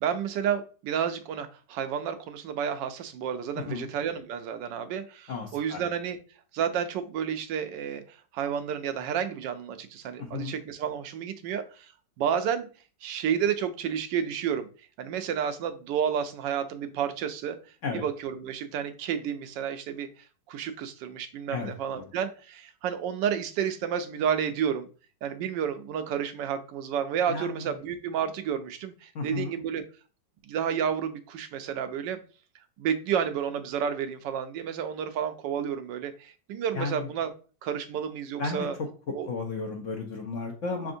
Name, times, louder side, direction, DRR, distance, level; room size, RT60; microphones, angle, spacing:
voice 1, 0.0-6.2 6.5-11.9 12.2-12.7 13.0-14.7 15.0-17.6 17.9-20.1 20.5-24.9 25.2-29.8 30.5-32.2 32.8-37.3 37.6-38.8 39.1-39.3, right 8 dB, 80° right, 9 dB, 1.2 m, -31 dB
voice 2, 3.6-3.9 5.3-5.8 10.2-10.5 17.8-18.0 21.5-22.0 27.3-27.6 29.1-29.5 36.7-37.1 38.4-38.7 39.3-40.9, left 4 dB, 65° left, 1 dB, 0.8 m, -34 dB
5.0 x 3.5 x 2.6 m, 0.37 s
omnidirectional pair, 1.9 m